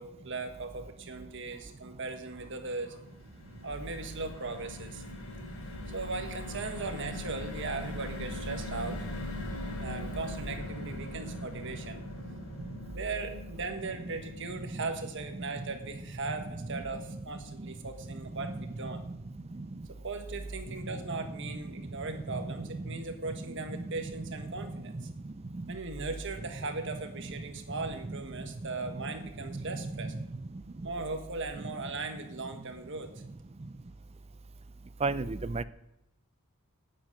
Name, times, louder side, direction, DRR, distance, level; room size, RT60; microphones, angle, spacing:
voice 1, 0.0-3.0 3.6-5.0 5.9-9.0 9.8-12.0 12.9-19.0 19.9-25.1 25.7-30.1 30.8-33.1, right 3 dB, 55° right, 6 dB, 1.6 m, -38 dB
sound 1, 2.8-19.2 19.6-19.7 19.9-20.2, left 1 dB, 70° left, 3.6 m, -42 dB
voice 2, 29.5-30.1 35.0-35.6, right 3 dB, 25° right, 15 dB, 0.4 m, -33 dB
9.4 x 9.1 x 8.9 m, 0.90 s
head